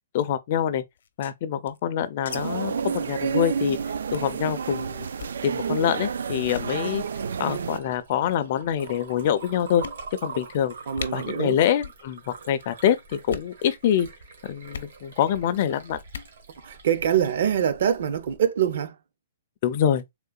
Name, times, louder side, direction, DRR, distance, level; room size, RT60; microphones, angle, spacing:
voice 1, 0.1-0.8 1.2-3.8 4.1-5.1 5.4-7.0 7.4-9.8 10.2-10.7 11.1-14.1 14.5-16.0 19.6-20.0, left 9 dB, 35° left, 0.4 m, -25 dB
sound 1, 1.0-2.4 2.6-2.7 3.0-3.2 3.5-3.7 4.1-4.4 5.1-5.4 6.0-6.2 6.4-6.7 7.6-8.0 8.7-8.8 9.3-9.4 9.8-10.4 10.6-10.7 10.9-11.1 11.8-12.0 12.3-12.7 13.2-13.5 14.7-14.9 16.0-16.3, left 6 dB, 75° left, 0.6 m, -39 dB
sound 2, 2.3-7.8, right 6 dB, 85° right, 0.4 m, -30 dB
Liquid, 6.6-18.4, right 5 dB, 70° right, 1.6 m, -45 dB
voice 2, 10.9-11.6 16.6-19.0, right 9 dB, 50° right, 0.6 m, -24 dB
3.7 x 3.0 x 2.3 m
hypercardioid pair, 175°, 0 cm